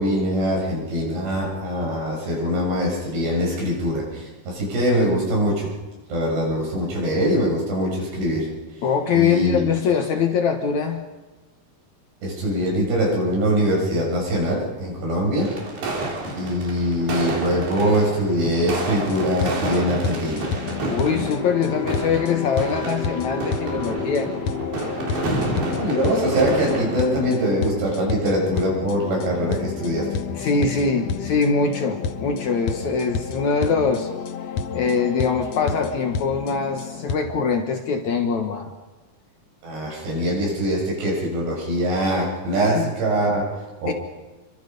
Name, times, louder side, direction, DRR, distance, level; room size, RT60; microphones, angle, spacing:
voice 1, 0.0-5.7 6.1-8.5 9.1-9.7 12.2-15.5 16.4-20.4 25.8-30.2 39.6-43.5 43.8-43.9, equal, 85° right, -2 dB, 9.3 m, -23 dB
voice 2, 8.8-11.0 20.9-24.3 30.3-34.1 34.7-38.7 42.8-42.9 43.9-44.0, left 5 dB, 60° left, 5 dB, 2.2 m, -23 dB
sound 1, 15.4-27.0, right 2 dB, 70° right, 5.9 m, -29 dB
sound 2, 18.5-37.1, left 6 dB, 75° left, 1.5 m, -30 dB
30.0 x 24.0 x 5.4 m, 1.2 s
omnidirectional pair, 4.6 m